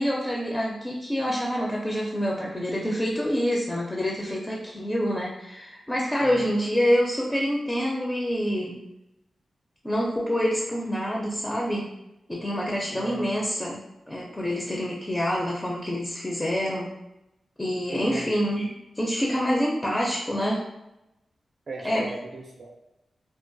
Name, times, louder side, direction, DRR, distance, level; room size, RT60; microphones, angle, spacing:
voice 1, 0.0-8.8 9.8-11.9 12.3-16.9 17.6-20.6 21.8-22.1, equal, 15° left, -2 dB, 0.4 m, -27 dB
voice 2, 12.9-13.3 17.9-18.4 21.7-22.7, right 3 dB, 55° right, 0 dB, 0.3 m, -37 dB
2.2 x 2.2 x 2.5 m, 0.91 s
cardioid pair, 65°, 0 cm